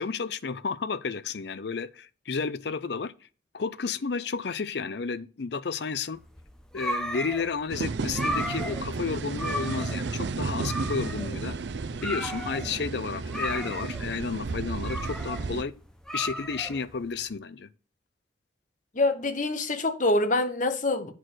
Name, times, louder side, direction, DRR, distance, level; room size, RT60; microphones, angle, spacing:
voice 1, 0.0-3.1 3.5-6.2 6.7-11.6 12.0-15.7 16.1-17.7, left 5 dB, 65° left, 0.5 m, -32 dB
sound 1, 6.2-17.2, equal, 5° left, 0.8 m, -35 dB
sound 2, 7.7-15.6, right 3 dB, 70° right, 0.5 m, -33 dB
voice 2, 18.9-21.1, left 2 dB, 45° left, 0.9 m, -25 dB
8.9 x 4.5 x 6.3 m
head